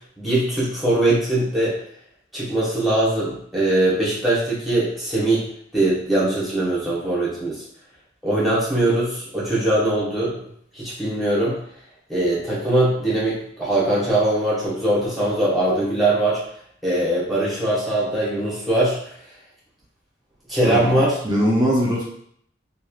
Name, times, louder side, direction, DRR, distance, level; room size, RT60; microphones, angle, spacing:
voice 1, 0.2-1.8 2.3-5.5 5.7-7.6 8.2-10.3 10.7-11.6 12.1-16.4 16.8-19.0 20.5-21.2, right 1 dB, ahead, -8 dB, 1.1 m, -21 dB
voice 2, 20.6-21.0 21.2-22.0, equal, 20° right, -5 dB, 0.6 m, -20 dB
3.1 x 2.4 x 2.4 m, 0.66 s
head